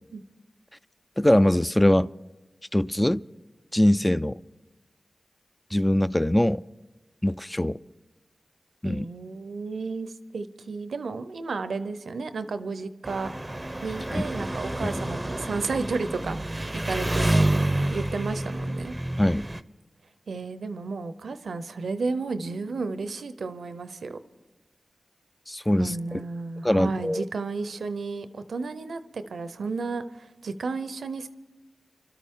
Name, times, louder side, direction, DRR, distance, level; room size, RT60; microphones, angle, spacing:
voice 1, 1.2-2.1 2.7-3.2 3.7-4.4 5.7-6.6 7.2-7.8 8.8-9.0 14.1-14.3 19.2-19.5 25.5-26.2 26.6-27.2, left 1 dB, 15° left, 0.4 m, -22 dB
voice 2, 8.8-13.3 13.8-19.0 20.3-24.2 25.8-31.3, right 4 dB, 85° right, 0.6 m, -33 dB
Engine, 13.0-19.6, right 1 dB, 20° right, 0.6 m, -28 dB
26.5 x 12.5 x 3.7 m
cardioid pair, 40°, 0 cm